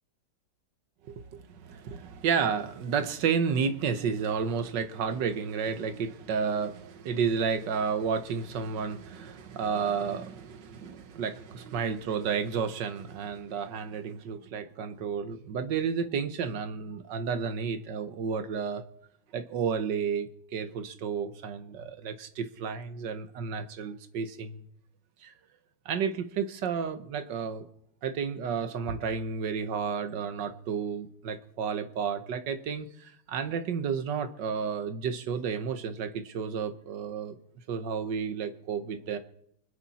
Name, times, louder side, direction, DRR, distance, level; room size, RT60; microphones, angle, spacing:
voice 1, 1.1-18.8 19.3-24.6 25.2-25.3 25.8-27.7 28.0-37.4 37.7-39.2, right 6 dB, 60° right, 11 dB, 1.6 m, -31 dB
25.0 x 10.5 x 4.2 m, 0.70 s
omnidirectional pair, 2.3 m